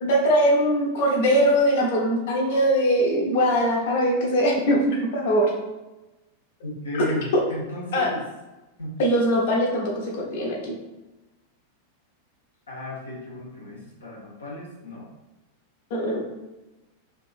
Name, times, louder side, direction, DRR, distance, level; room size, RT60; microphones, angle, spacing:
voice 1, 0.0-5.5 7.9-8.1 9.0-10.8 15.9-16.2, equal, 55° left, -1 dB, 0.6 m, -21 dB
voice 2, 6.6-8.2 8.8-9.0 12.7-15.1, left 1 dB, 70° left, -3 dB, 1.0 m, -34 dB
3.4 x 2.6 x 2.4 m, 1.1 s
figure-of-eight pair, 90°, 0 cm